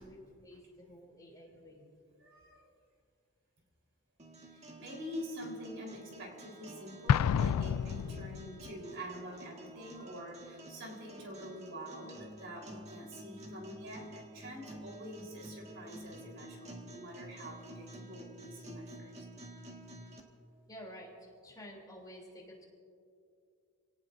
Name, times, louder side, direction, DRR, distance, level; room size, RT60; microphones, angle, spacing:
voice 1, 0.0-1.9 20.7-22.6, equal, 15° left, -2 dB, 3.2 m, -51 dB
voice 2, 2.2-2.7 4.5-19.3, equal, 55° right, 0 dB, 4.1 m, -46 dB
sound 1, 4.2-20.2, right 1 dB, 30° right, 1.7 m, -51 dB
Explosion, 7.1-8.7, left 8 dB, 90° left, 0.3 m, -29 dB
28.5 x 18.5 x 2.7 m, 2.4 s
head